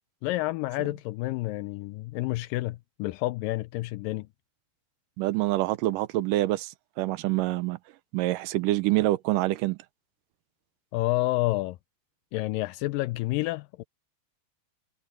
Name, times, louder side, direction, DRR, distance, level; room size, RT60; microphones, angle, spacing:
voice 1, 0.2-4.3 10.9-11.8 12.3-13.8, left 19 dB, 80° left, 2.0 m, -29 dB
voice 2, 5.2-7.8 8.1-9.8, right 17 dB, 75° right, 2.1 m, -26 dB
omnidirectional pair, 4.4 m